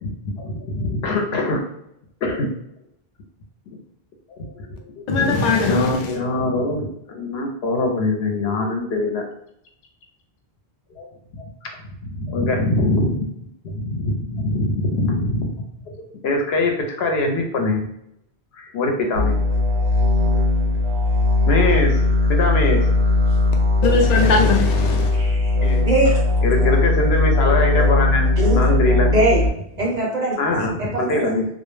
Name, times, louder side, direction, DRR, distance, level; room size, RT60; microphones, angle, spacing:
voice 1, 0.0-1.6 2.2-2.5 4.3-4.7 5.0-9.2 11.0-11.1 11.3-11.7 12.0-13.3 13.6-15.5 16.2-17.8 18.6-19.4 21.5-22.0 22.3-22.8 24.3-24.4 26.4-28.3 28.6-29.1 30.4-31.5, left 2 dB, 85° left, 2 dB, 0.9 m, -23 dB
voice 2, 5.1-6.2 23.8-25.1 25.6-25.8, left 3 dB, 55° left, 2 dB, 0.5 m, -19 dB
sound 1, 19.1-29.5, left 2 dB, 90° right, 0.8 m, -18 dB
voice 3, 25.1-25.5 25.9-26.2 28.4-28.6 29.1-29.4 29.8-30.9, right 2 dB, 45° right, -3 dB, 0.7 m, -21 dB
2.2 x 2.1 x 3.1 m, 0.78 s
omnidirectional pair, 1.0 m